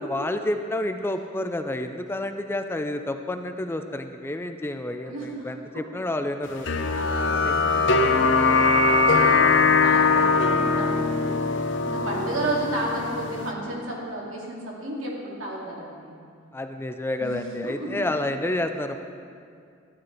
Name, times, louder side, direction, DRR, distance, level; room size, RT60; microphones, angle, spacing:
voice 1, 0.0-6.7 7.4-7.6 12.4-12.5 16.5-19.0, left 1 dB, 10° left, 7 dB, 0.4 m, -29 dB
voice 2, 5.0-5.8 6.8-11.5 11.7-16.2 17.2-18.1, right 1 dB, 90° right, -3 dB, 2.3 m, -33 dB
sound 1, 6.7-13.5, left 4 dB, 65° left, 0.7 m, -21 dB
12.0 x 9.1 x 4.5 m, 2.3 s
head